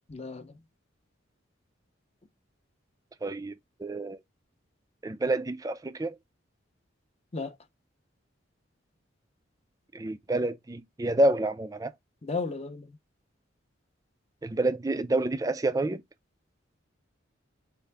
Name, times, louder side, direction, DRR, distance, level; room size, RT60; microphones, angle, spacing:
voice 1, 0.1-0.6 7.3-7.6 12.2-13.0, left 4 dB, 30° left, 0.5 m, -34 dB
voice 2, 3.2-3.5 3.8-4.2 5.0-6.2 9.9-11.9 14.4-16.0, right 2 dB, 15° right, 0.3 m, -28 dB
5.4 x 2.5 x 3.3 m
head